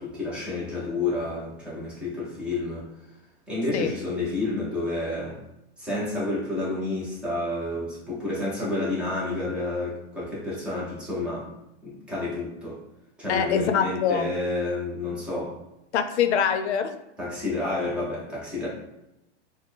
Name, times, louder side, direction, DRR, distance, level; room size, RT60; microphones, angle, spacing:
voice 1, 0.0-2.9 3.5-5.4 5.8-11.5 11.8-12.8 13.2-15.6 17.2-18.7, left 2 dB, 5° right, -7 dB, 0.4 m, -30 dB
voice 2, 13.3-14.3 15.9-16.9, left 7 dB, 75° left, 8 dB, 0.5 m, -24 dB
4.0 x 2.0 x 3.2 m, 0.92 s
supercardioid pair, 160°, 34 cm